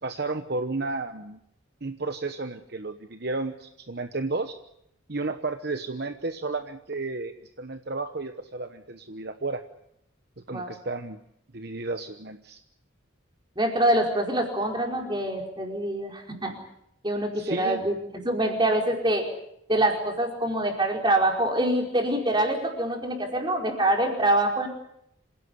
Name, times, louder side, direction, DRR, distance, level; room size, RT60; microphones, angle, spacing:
voice 1, 0.0-1.4 1.8-4.5 5.1-9.6 10.5-11.2 11.5-12.6 17.3-17.8, right 3 dB, 50° right, 8 dB, 1.0 m, -32 dB
voice 2, 13.6-16.5 17.0-17.9 18.2-19.3 19.7-24.7, right 1 dB, 20° right, 2 dB, 4.7 m, -25 dB
27.0 x 16.5 x 9.6 m, 0.77 s
head